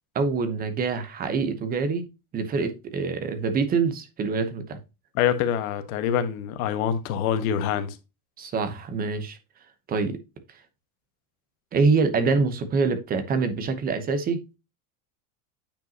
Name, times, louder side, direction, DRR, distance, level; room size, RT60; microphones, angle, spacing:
voice 1, 0.1-2.0 2.3-4.8 8.4-9.4 9.9-10.2 11.7-14.4, right 4 dB, 20° right, 0.9 m, -25 dB
voice 2, 5.1-8.0, left 9 dB, 80° left, 1.4 m, -25 dB
9.0 x 5.1 x 2.8 m
cardioid pair, 170°, 42 cm